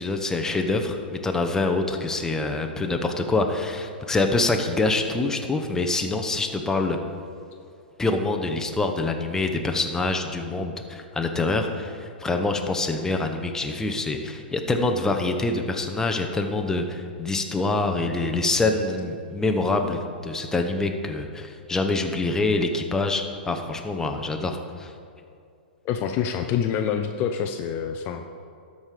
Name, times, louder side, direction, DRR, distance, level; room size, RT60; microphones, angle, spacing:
voice 1, 0.0-7.0 8.0-24.9, left 2 dB, 10° left, 4 dB, 0.8 m, -25 dB
voice 2, 25.8-28.2, left 8 dB, 35° left, 6 dB, 0.5 m, -26 dB
12.5 x 5.4 x 4.9 m, 2.4 s
hypercardioid pair, 115°, 6 cm